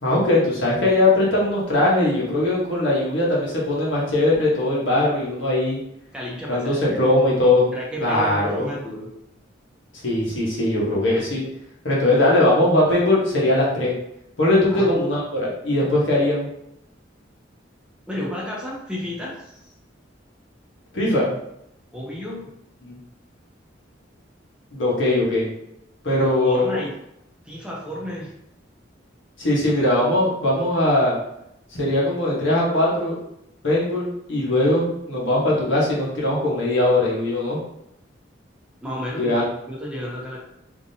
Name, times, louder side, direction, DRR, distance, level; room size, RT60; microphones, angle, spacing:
voice 1, 0.0-5.8 6.5-7.7 8.0-8.7 10.0-11.4 11.8-13.9 14.4-16.5 20.9-21.3 22.8-23.0 24.7-25.5 26.0-26.8 29.4-31.2 31.7-33.2 33.6-37.6 39.1-39.5, left 1 dB, 80° left, -5 dB, 1.3 m, -20 dB
voice 2, 6.1-7.1 7.7-9.1 14.7-14.9 18.1-19.7 21.9-22.4 26.2-26.9 27.4-28.3 38.8-40.4, equal, 5° right, -5 dB, 0.7 m, -32 dB
3.5 x 2.8 x 2.8 m, 0.79 s
head